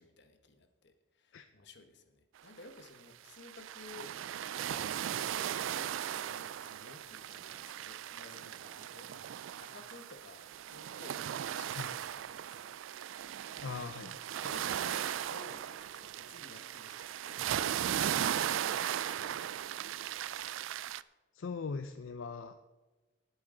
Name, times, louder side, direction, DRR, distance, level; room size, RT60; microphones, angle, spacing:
voice 1, 0.0-4.9 5.3-12.8 14.3-19.7, left 3 dB, 65° left, 7 dB, 1.3 m, -55 dB
sound 1, 2.8-2.9 3.3-21.0, right 10 dB, 80° right, 0.3 m, -37 dB
voice 2, 13.6-14.2 21.3-22.5, left 5 dB, 80° left, 9 dB, 0.5 m, -40 dB
18.5 x 7.8 x 3.9 m, 1.2 s
head